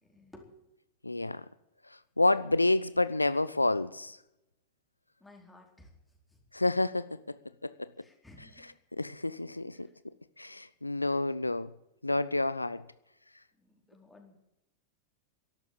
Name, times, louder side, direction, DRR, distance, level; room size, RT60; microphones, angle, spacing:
voice 1, 0.0-0.6 5.2-5.9 6.3-6.4 8.0-8.7 9.7-9.9 13.6-14.4, left 2 dB, 5° left, 4.3 m, -56 dB
voice 2, 1.0-1.5 2.2-4.2 6.5-7.4 7.6-7.9 9.0-9.9 10.4-11.7 12.0-12.8, left 2 dB, 85° left, 0.5 m, -29 dB
13.5 x 12.0 x 8.6 m
figure-of-eight pair, 90°, 0 cm